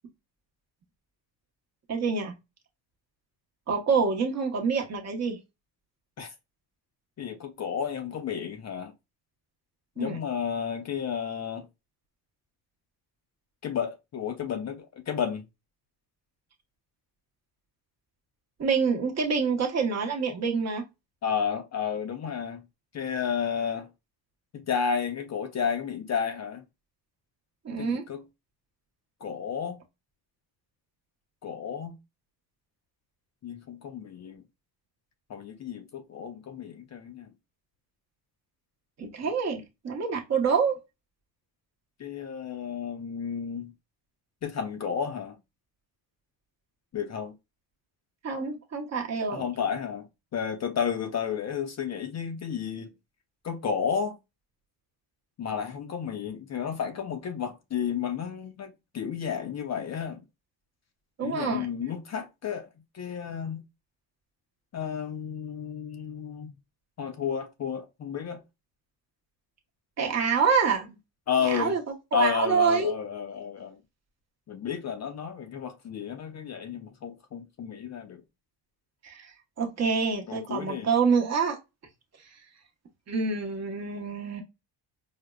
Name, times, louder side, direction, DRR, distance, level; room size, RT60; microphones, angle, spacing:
voice 1, 1.9-2.3 3.7-5.4 10.0-10.2 18.6-20.8 27.6-28.0 39.0-40.8 48.2-49.5 61.2-61.7 70.0-71.0 71.4-71.8 72.1-72.9 79.0-81.6 83.1-84.4, right 5 dB, 40° right, 0.8 m, -26 dB
voice 2, 7.2-8.9 10.0-11.7 13.6-15.5 21.2-22.6 22.9-23.9 24.5-26.6 27.8-28.2 29.2-29.8 31.4-32.0 33.4-34.4 35.3-37.3 39.2-39.3 42.0-43.7 44.4-45.4 46.9-47.4 49.3-50.1 50.3-52.9 53.4-54.2 55.4-60.2 61.2-62.7 62.9-63.6 64.7-66.5 67.0-68.4 71.3-71.8 72.1-73.8 74.5-78.2 80.3-80.9, left 7 dB, 40° left, 0.5 m, -32 dB
4.9 x 2.0 x 2.2 m
cardioid pair, 140°, 43 cm